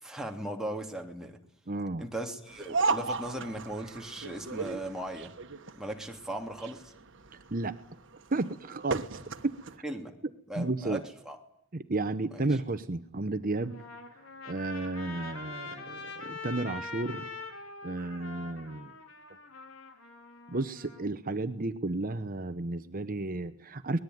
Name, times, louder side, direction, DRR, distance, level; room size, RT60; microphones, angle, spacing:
voice 1, 0.0-1.4 2.0-5.3 5.8-6.9 9.8-10.1 10.5-11.4 12.3-12.4, right 1 dB, 5° right, 1 dB, 2.9 m, -38 dB
voice 2, 1.7-2.0 7.5-7.8 8.3-9.8 10.6-11.0 11.7-13.8 14.4-17.3 17.8-18.9 20.5-24.0, right 2 dB, 45° right, 10 dB, 1.0 m, -33 dB
sound 1, 2.5-9.8, right 4 dB, 65° right, 1.5 m, -35 dB
Trumpet, 13.6-21.0, left 4 dB, 75° left, 4.4 m, -44 dB
24.5 x 20.5 x 9.5 m, 0.75 s
head